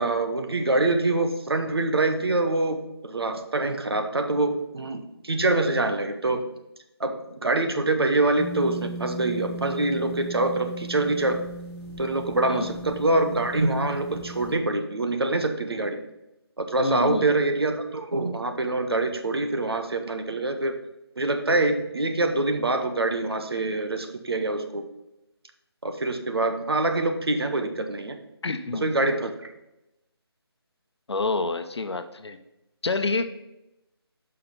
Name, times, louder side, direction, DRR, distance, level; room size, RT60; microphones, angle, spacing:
voice 1, 0.0-6.5 7.0-11.4 12.0-16.0 16.6-20.8 21.2-24.8 25.8-28.2 28.8-29.3, right 2 dB, 70° right, 6 dB, 1.0 m, -25 dB
sound 1, 8.4-14.5, right 2 dB, 15° left, 1.2 m, -38 dB
voice 2, 16.8-17.3 28.4-28.9 31.1-32.4 32.8-33.3, left 3 dB, 85° left, 9 dB, 0.8 m, -28 dB
5.9 x 5.6 x 5.2 m, 0.93 s
figure-of-eight pair, 180°, 14 cm